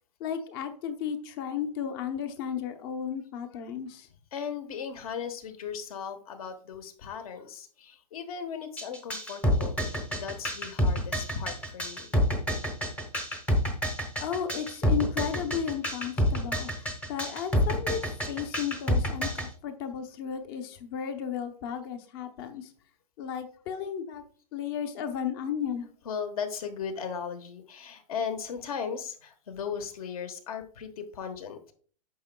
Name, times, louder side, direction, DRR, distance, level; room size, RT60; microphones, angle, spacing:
voice 1, 0.2-4.1 14.2-18.0 18.3-22.7 23.2-24.2 24.5-25.9, left 8 dB, 35° left, 8 dB, 0.8 m, -34 dB
voice 2, 4.3-12.1 26.0-31.7, left 6 dB, 60° left, 8 dB, 1.3 m, -37 dB
sound 1, 8.8-19.5, equal, 5° left, 0.8 m, -28 dB
9.3 x 6.0 x 2.3 m, 0.43 s
hypercardioid pair, 155°, 21 cm